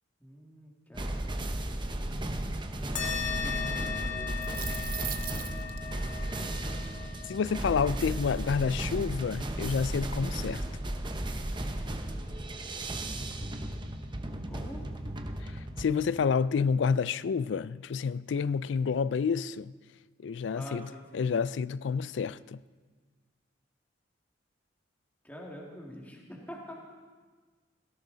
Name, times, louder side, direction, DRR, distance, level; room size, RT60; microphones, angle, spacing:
voice 1, 0.2-1.4 2.8-4.3 14.5-14.8 20.5-21.3 25.2-26.7, equal, 10° left, 2.1 m, -46 dB
sound 1, 0.9-15.8, right 1 dB, 25° right, 0.9 m, -35 dB
sound 2, 3.0-11.9, left 7 dB, 40° left, 1.6 m, -40 dB
sound 3, 4.2-5.8, right 12 dB, 50° right, 0.7 m, -38 dB
voice 2, 7.3-10.6 15.4-15.5 15.8-19.7 20.2-22.6, left 6 dB, 70° left, 0.4 m, -29 dB
17.5 x 17.0 x 4.0 m
head